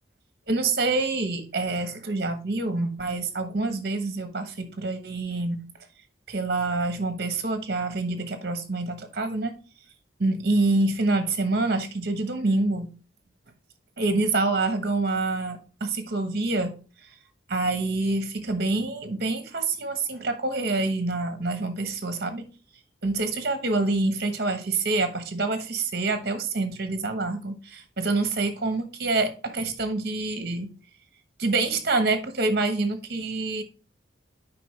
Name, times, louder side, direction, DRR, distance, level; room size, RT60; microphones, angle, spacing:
voice 1, 0.5-5.6 6.3-9.5 10.2-12.9 14.0-16.7 17.5-22.4 23.0-30.7 31.4-33.6, right 3 dB, 55° right, 1.1 m, -26 dB
7.6 x 5.1 x 3.2 m
head